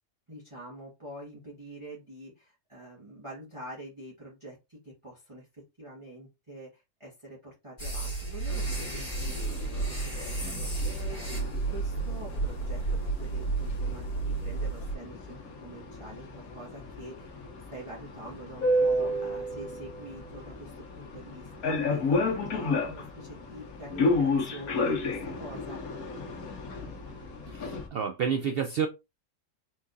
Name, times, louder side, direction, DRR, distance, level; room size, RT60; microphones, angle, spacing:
voice 1, 0.3-17.4 17.7-25.8, right 1 dB, 20° right, 1.8 m, -46 dB
sound 1, 7.8-14.9, right 3 dB, 25° left, 2.1 m, -32 dB
sound 2, 8.5-27.9, left 2 dB, 70° left, 1.5 m, -33 dB
voice 2, 27.5-28.9, right 7 dB, 85° right, 0.5 m, -29 dB
4.4 x 3.7 x 2.6 m
omnidirectional pair, 1.6 m